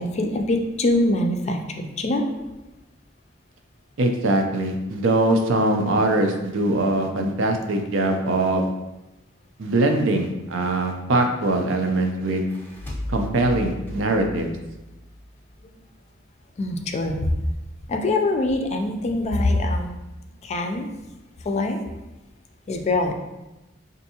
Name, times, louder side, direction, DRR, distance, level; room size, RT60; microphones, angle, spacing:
voice 1, 0.0-2.4 16.6-17.3 17.9-20.0 20.4-20.9 21.4-21.8 22.7-23.1, left 2 dB, 35° left, 4 dB, 0.4 m, -23 dB
voice 2, 4.0-8.7 9.6-12.4 13.1-14.5, right 2 dB, 75° right, 4 dB, 0.5 m, -22 dB
sound 1, 12.2-15.6, left 1 dB, 10° left, 0.7 m, -35 dB
4.4 x 2.6 x 2.8 m, 1.0 s
head